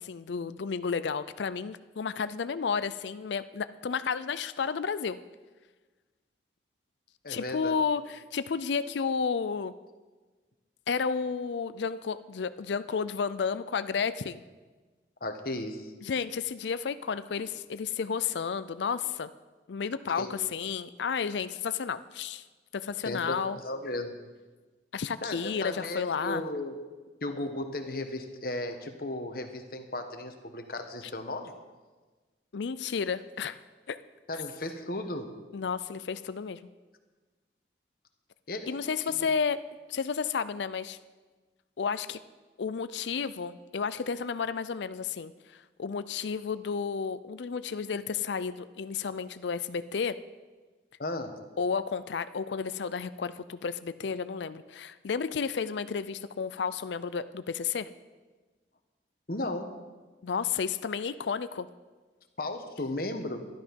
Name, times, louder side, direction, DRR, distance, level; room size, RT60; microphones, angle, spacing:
voice 1, 0.0-5.2 7.3-9.7 10.9-14.4 16.0-19.3 19.7-22.4 22.7-23.6 24.9-26.4 32.5-33.6 33.9-34.0 35.5-36.6 38.7-39.6 39.9-41.0 41.8-42.2 42.6-45.3 45.8-50.2 51.6-57.9 60.2-61.7, left 6 dB, 75° left, 14 dB, 0.5 m, -32 dB
voice 2, 7.2-7.8 15.2-15.9 20.2-20.3 23.0-24.2 25.2-26.8 27.2-31.5 34.3-35.3 38.5-38.7 39.1-39.3 51.0-51.3 59.3-59.7 62.4-63.5, left 1 dB, 55° left, 6 dB, 1.2 m, -35 dB
12.0 x 12.0 x 5.3 m, 1.3 s
head